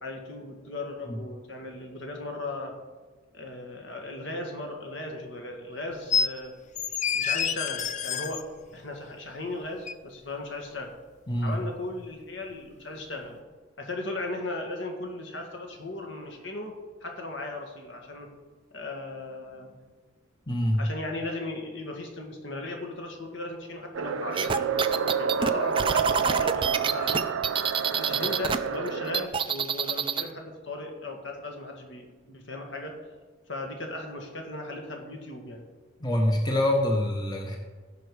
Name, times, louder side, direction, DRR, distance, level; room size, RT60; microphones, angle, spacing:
voice 1, 0.0-2.7 3.3-6.5 7.1-8.4 8.7-10.9 11.4-13.4 13.8-16.8 17.0-18.3 18.7-19.8 20.8-27.3 27.8-32.9 33.5-35.6, left 2 dB, 65° left, 2 dB, 1.8 m, -37 dB
sound 1, 6.1-6.3 6.8-8.4 9.9-10.0, left 6 dB, 35° left, 0.4 m, -27 dB
voice 2, 20.5-20.8 36.0-37.6, left 1 dB, 20° left, 1 dB, 1.0 m, -25 dB
sound 2, 23.9-29.3, right 6 dB, 85° right, 0.5 m, -29 dB
sound 3, 24.4-28.6 28.9-30.3, right 6 dB, 25° right, 0.4 m, -27 dB
16.0 x 5.4 x 4.8 m, 1.3 s
head